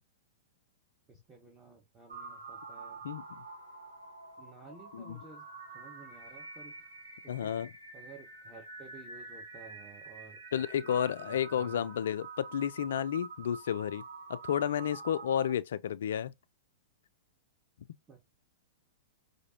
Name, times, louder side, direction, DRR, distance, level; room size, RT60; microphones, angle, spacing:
voice 1, 1.1-3.0 4.4-5.5 5.7-6.8 7.2-7.5 7.9-10.4 10.8-11.9 18.1-18.4, right 4 dB, 15° right, 1.2 m, -54 dB
sound 1, 2.1-15.5, right 4 dB, 80° right, 1.4 m, -47 dB
voice 2, 3.0-3.4 4.9-5.2 7.3-7.7 10.5-14.0 14.3-16.3, left 9 dB, 65° left, 0.3 m, -32 dB
5.0 x 2.6 x 2.8 m
figure-of-eight pair, 105°, 0 cm